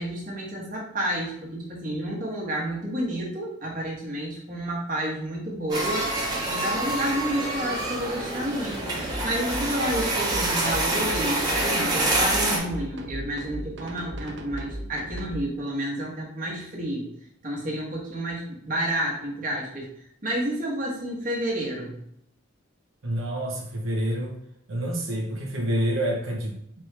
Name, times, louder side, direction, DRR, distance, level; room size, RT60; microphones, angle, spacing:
voice 1, 0.0-9.0 9.2-17.1 17.4-19.9 20.2-22.0, right 1 dB, 40° right, -3 dB, 1.2 m, -30 dB
sound 1, 5.7-12.6, right 1 dB, 20° right, 1.0 m, -27 dB
sound 2, 9.0-15.4, right 1 dB, 55° right, 0.5 m, -37 dB
voice 2, 23.0-24.3 24.7-26.8, right 1 dB, 85° right, -1 dB, 0.9 m, -28 dB
4.3 x 3.1 x 3.3 m, 0.73 s
head